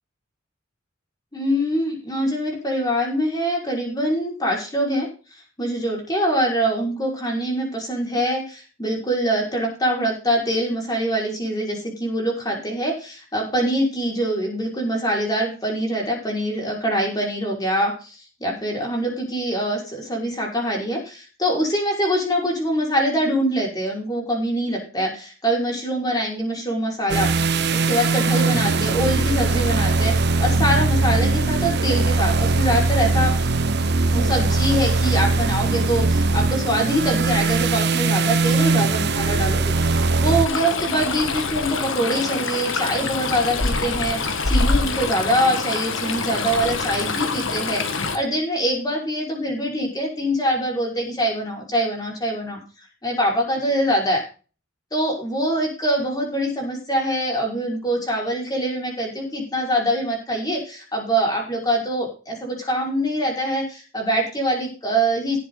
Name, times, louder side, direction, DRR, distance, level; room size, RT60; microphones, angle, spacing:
voice 1, 1.3-27.3 27.7-33.5 34.1-52.6 53.0-54.2 54.9-65.4, equal, 20° left, -1 dB, 5.4 m, -24 dB
sound 1, 27.1-40.5, right 3 dB, 55° right, 1.2 m, -20 dB
Stream, 40.5-48.2, left 3 dB, 70° left, 1.7 m, -25 dB
18.0 x 7.6 x 4.0 m, 0.35 s
head